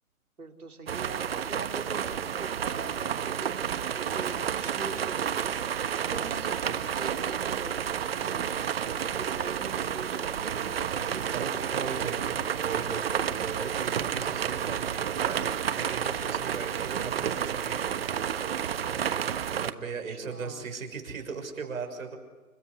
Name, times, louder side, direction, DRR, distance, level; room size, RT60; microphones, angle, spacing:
voice 1, 0.4-8.6 9.2-12.6 20.1-20.7, right 3 dB, 85° right, 4 dB, 3.9 m, -42 dB
sound 1, 0.9-19.7, right 8 dB, 45° right, 1.3 m, -30 dB
voice 2, 11.3-12.2 12.6-18.0 19.6-22.2, right 5 dB, 65° right, 4 dB, 6.3 m, -38 dB
29.5 x 16.5 x 9.9 m, 1.3 s
figure-of-eight pair, 150°, 43 cm